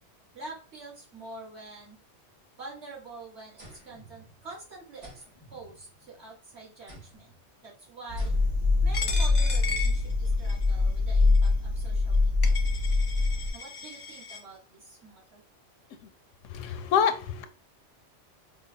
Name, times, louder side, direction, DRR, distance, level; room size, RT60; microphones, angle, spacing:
voice 1, 0.3-2.0 2.6-5.2 5.5-8.3 8.8-12.6 13.5-15.4, right 2 dB, 65° right, -5 dB, 2.1 m, -46 dB
sound 1, 3.6-4.6 5.0-6.3 6.9-7.4 8.2-8.8, right 1 dB, 80° right, 2.4 m, -52 dB
sound 2, 8.1-13.5, left 3 dB, 35° right, 0.5 m, -24 dB
Coin (dropping), 8.9-10.7 11.4-11.5 12.1-12.2 12.4-14.4, left 4 dB, 50° left, 0.6 m, -36 dB
voice 2, 16.4-17.4, left 7 dB, 90° left, 9 dB, 0.9 m, -26 dB
5.1 x 2.2 x 2.7 m, 0.35 s
omnidirectional pair, 1.2 m